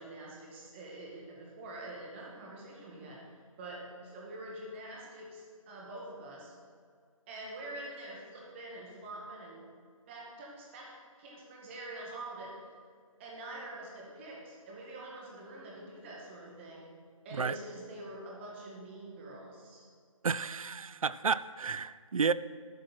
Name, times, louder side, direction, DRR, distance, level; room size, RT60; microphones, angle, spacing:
voice 1, 0.0-3.2 3.6-6.5 7.3-9.6 10.1-12.6 13.2-16.9 17.2-19.9, right 1 dB, 20° right, -3 dB, 2.0 m, -45 dB
voice 2, 20.2-22.3, right 5 dB, 75° right, 16 dB, 0.4 m, -31 dB
12.5 x 6.2 x 6.0 m, 2.1 s
figure-of-eight pair, 155°, 18 cm